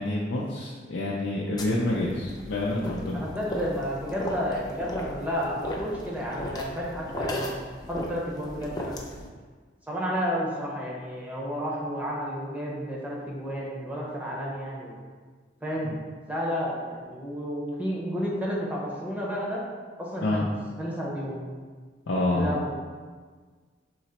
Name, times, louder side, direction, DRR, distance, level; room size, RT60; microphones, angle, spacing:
voice 1, 0.0-3.2 15.8-15.9 20.2-20.5 22.1-22.5, left 1 dB, 75° left, -5 dB, 0.5 m, -27 dB
sound 1, 1.6-9.3, left 1 dB, 20° left, 0.5 m, -36 dB
voice 2, 3.1-7.6 7.9-9.1 9.9-15.0 15.6-16.0 16.3-19.6 20.0-20.5 20.8-21.5 22.3-22.7, equal, 10° right, -5 dB, 0.8 m, -31 dB
3.9 x 2.9 x 4.3 m, 1.5 s
head